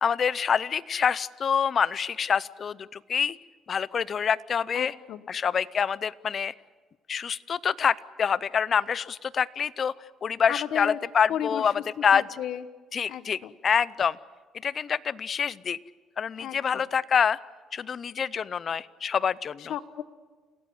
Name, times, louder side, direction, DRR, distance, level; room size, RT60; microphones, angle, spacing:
voice 1, 0.0-3.4 3.7-4.9 5.3-6.5 7.1-9.9 10.2-11.7 12.0-12.3 12.9-14.2 14.6-15.8 16.2-17.4 17.7-19.7, left 7 dB, 40° left, 19 dB, 0.6 m, -26 dB
voice 2, 4.7-5.2 10.5-11.0 11.3-11.7 12.1-12.6 13.1-13.5 16.4-16.8 19.7-20.0, left 10 dB, 70° left, 11 dB, 1.2 m, -33 dB
28.0 x 17.5 x 8.0 m, 1.4 s
cardioid pair, 125°, 0 cm